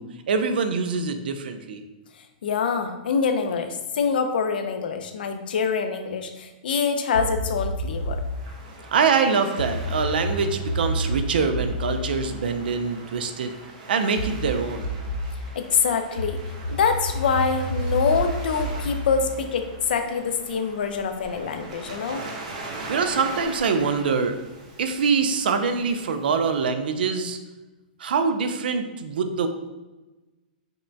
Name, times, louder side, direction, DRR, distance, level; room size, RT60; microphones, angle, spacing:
voice 1, 0.0-1.8 8.9-13.5 13.9-14.9 22.9-24.4 24.8-27.4 28.0-29.5, right 5 dB, 80° right, 7 dB, 0.4 m, -24 dB
voice 2, 2.4-8.2 15.6-16.4 16.7-22.2, left 6 dB, 75° left, 6 dB, 0.5 m, -25 dB
sound 1, 7.1-8.4 9.6-13.3 14.2-15.4 16.2-20.1, equal, 50° left, 0.7 m, -30 dB
Waves surf, 7.9-26.7, right 2 dB, 45° right, 0.7 m, -42 dB
5.2 x 2.2 x 2.6 m, 1.1 s
hypercardioid pair, 170°, 5 cm